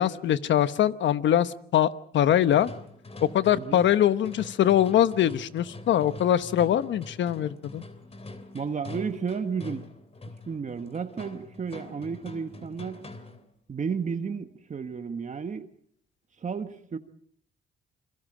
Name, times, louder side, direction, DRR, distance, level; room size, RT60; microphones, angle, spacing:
voice 1, 0.0-2.7 3.3-7.8, left 11 dB, 70° left, 1.1 m, -23 dB
sound 1, 2.3-13.5, left 2 dB, 30° left, 3.3 m, -44 dB
voice 2, 3.5-3.8 8.5-9.9 10.5-13.1 13.7-15.7 16.4-17.0, right 6 dB, 40° right, 1.5 m, -32 dB
28.0 x 23.0 x 5.0 m
cardioid pair, 90°, 20 cm